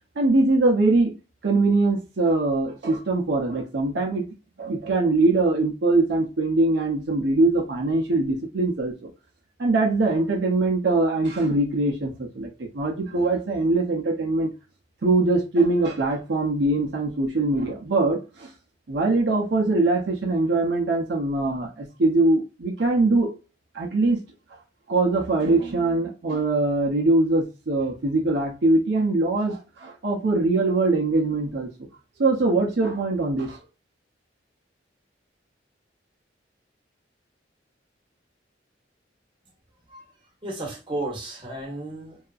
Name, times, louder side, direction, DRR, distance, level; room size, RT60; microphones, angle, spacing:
voice 1, 0.2-1.2 1.4-4.2 4.6-9.1 9.6-14.5 15.0-18.5 18.9-23.3 23.7-24.2 24.9-31.7 32.2-33.6, right 2 dB, 65° right, 0.5 m, -22 dB
voice 2, 40.4-42.2, right 2 dB, 25° right, 0.9 m, -33 dB
2.7 x 2.3 x 2.3 m
head